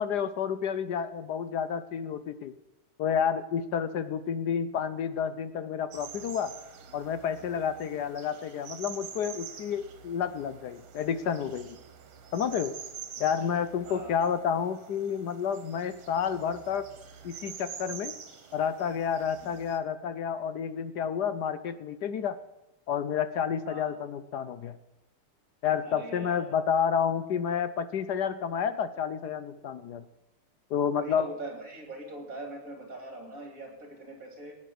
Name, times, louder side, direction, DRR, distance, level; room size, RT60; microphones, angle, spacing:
voice 1, 0.0-2.5 3.0-6.5 6.9-11.8 12.3-12.7 13.2-16.9 17.2-18.1 18.5-22.4 22.9-24.8 25.6-30.0 30.7-31.3, left 7 dB, 65° left, 12 dB, 1.0 m, -30 dB
sound 1, 5.9-19.8, right 7 dB, 75° right, 2.2 m, -46 dB
voice 2, 25.8-26.5 31.0-34.5, right 2 dB, 40° right, 2 dB, 3.6 m, -42 dB
17.5 x 9.1 x 7.8 m, 0.96 s
omnidirectional pair, 2.4 m